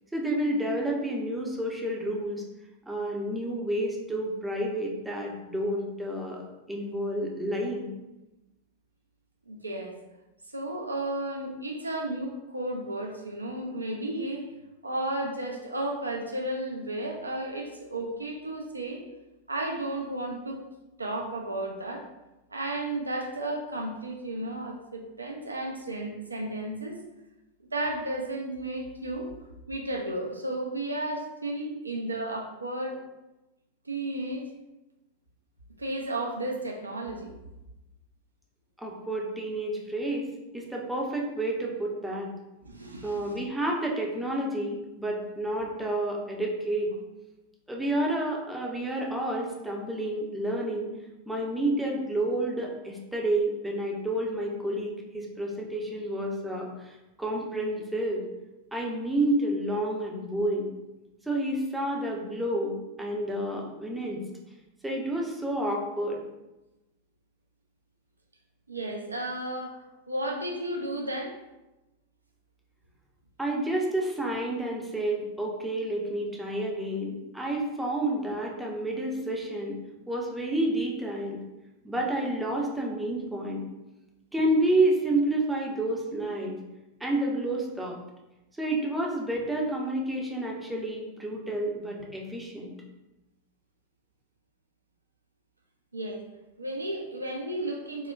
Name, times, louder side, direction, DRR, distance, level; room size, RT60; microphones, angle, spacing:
voice 1, 0.1-2.4 2.9-7.9 38.8-40.3 40.5-42.3 43.0-46.9 47.7-50.9 51.3-58.2 58.7-60.7 61.3-64.2 64.8-66.2 73.4-79.8 80.1-81.4 81.8-83.6 84.3-86.6 87.0-88.0 88.6-92.7, right 1 dB, 5° right, -2 dB, 0.5 m, -29 dB
voice 2, 9.5-9.9 10.5-14.4 14.8-19.0 19.5-20.6 21.0-22.1 22.5-27.0 27.7-29.3 29.7-33.0 33.9-34.4 35.8-37.3 42.6-43.4 68.7-69.8 70.1-71.4 95.9-96.2 96.6-98.1, right 1 dB, 80° right, 1 dB, 0.4 m, -33 dB
3.7 x 2.1 x 2.3 m, 0.99 s
figure-of-eight pair, 90°, 0 cm